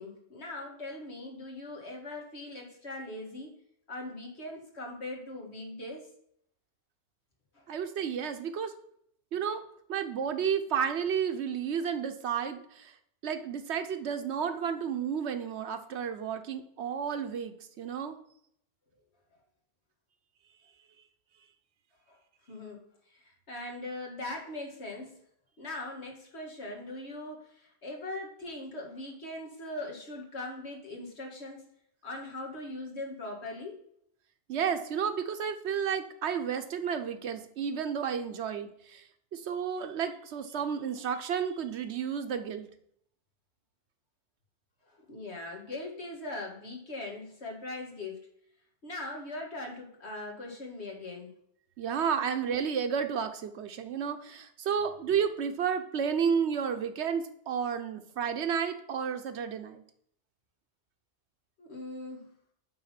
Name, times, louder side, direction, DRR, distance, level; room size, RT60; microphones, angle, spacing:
voice 1, 0.0-3.6 3.9-6.1 7.5-7.7 22.1-22.2 22.5-22.8 23.1-25.2 25.6-31.7 32.0-33.8 44.9-48.2 48.8-51.3 61.6-62.3, left 2 dB, 80° left, 0 dB, 2.1 m, -40 dB
voice 2, 7.7-8.7 9.3-9.6 9.9-12.9 13.2-18.2 34.5-39.0 39.3-42.7 51.8-59.8, right 7 dB, 85° right, 8 dB, 1.1 m, -32 dB
8.7 x 4.0 x 5.8 m, 0.69 s
omnidirectional pair, 1.1 m